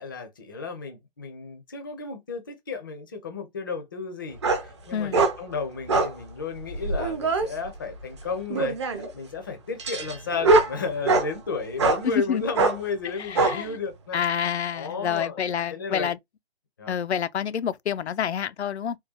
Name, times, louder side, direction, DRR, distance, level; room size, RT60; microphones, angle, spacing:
voice 1, 0.0-14.2 14.7-15.4 15.7-16.1 16.8-17.0, left 4 dB, 20° left, 0.5 m, -33 dB
sound 1, 4.4-4.7 5.1-5.3 5.9-6.1 6.7-7.5 8.5-9.1 9.8-11.3 11.8-12.0 12.5-12.8 13.3-13.6, right 3 dB, 25° right, 0.6 m, -22 dB
voice 2, 12.0-12.4 13.2-13.8 14.1-16.2 16.9-19.0, left 8 dB, 85° left, 0.5 m, -28 dB
3.6 x 2.3 x 2.8 m
hypercardioid pair, 155°, 32 cm